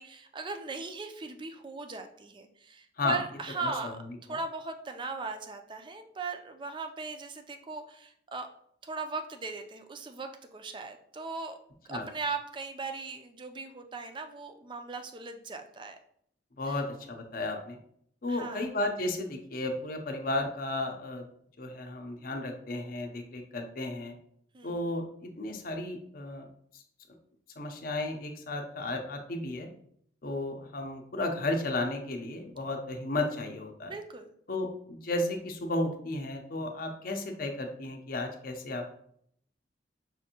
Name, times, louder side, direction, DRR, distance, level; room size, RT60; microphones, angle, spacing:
voice 1, 0.0-4.0 4.3-8.5 8.8-11.6 11.9-16.0 16.6-16.8 18.3-18.6 24.5-24.9 33.9-34.3, right 3 dB, 25° right, 6 dB, 0.4 m, -38 dB
voice 2, 3.6-4.1 11.9-12.1 16.6-17.8 18.2-21.3 21.6-24.1 24.6-26.5 26.7-26.8 27.6-29.7 30.2-33.9 34.5-39.0, left 2 dB, 50° left, 4 dB, 0.6 m, -33 dB
5.7 x 2.6 x 2.8 m, 0.67 s
head